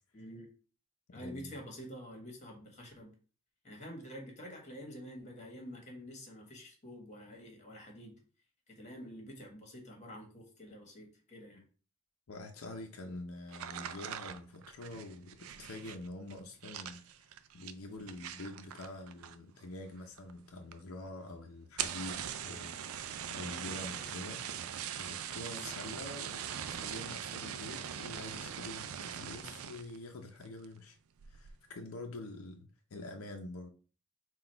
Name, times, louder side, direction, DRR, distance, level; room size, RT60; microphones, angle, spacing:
voice 1, 0.1-0.5 1.1-3.1 3.6-8.1 8.7-11.7 25.4-25.7, equal, 35° left, 1 dB, 1.3 m, -48 dB
voice 2, 1.1-1.5 12.3-17.3 17.5-24.4 24.9-31.0 31.3-33.7, left 2 dB, 85° left, 3 dB, 0.6 m, -46 dB
sound 1, 13.5-19.6 19.9-20.4 20.7-20.8 21.1-21.2 21.6-30.0 30.4-30.8 31.2-31.6, right 9 dB, 85° right, 0.4 m, -41 dB
4.0 x 2.3 x 4.4 m, 0.39 s
head